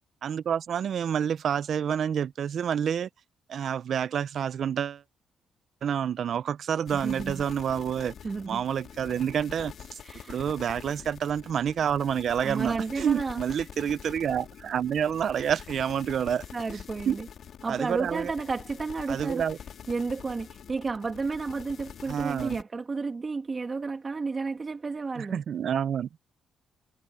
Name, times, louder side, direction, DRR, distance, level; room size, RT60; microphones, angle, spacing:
voice 1, 0.2-3.1 3.5-5.0 5.8-8.1 8.5-10.0 10.3-16.5 17.1-17.2 17.7-18.3 19.1-19.6 22.1-22.6 25.2-26.1, right 8 dB, 60° right, 0.6 m, -28 dB
sound 1, 6.9-22.6, left 8 dB, 65° left, 2.4 m, -45 dB
voice 2, 6.9-7.4 8.2-8.6 10.0-10.5 12.4-13.4 13.8-13.9 16.5-17.3 17.6-19.4 19.9-25.4, right 4 dB, 30° right, 2.8 m, -32 dB
cardioid pair, 105°, 0 cm